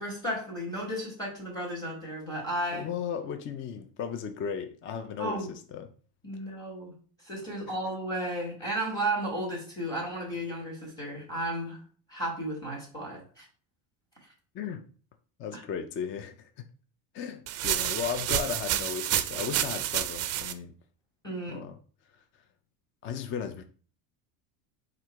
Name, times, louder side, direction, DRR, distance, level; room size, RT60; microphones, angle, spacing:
voice 1, 0.0-2.9 5.2-5.5 6.2-7.0 7.2-11.8 12.1-13.5 15.5-15.6 21.2-21.6, right 1 dB, 10° left, 2.4 m, -34 dB
voice 2, 2.7-5.9 6.3-6.5 7.5-7.7 14.5-14.9 15.4-16.7 17.1-20.7 21.5-21.8 22.1-22.4 23.0-23.6, left 7 dB, 30° left, 0.4 m, -36 dB
sound 1, 17.5-20.5, right 12 dB, 40° right, 0.4 m, -29 dB
4.5 x 2.5 x 4.5 m
supercardioid pair, 120°, 42 cm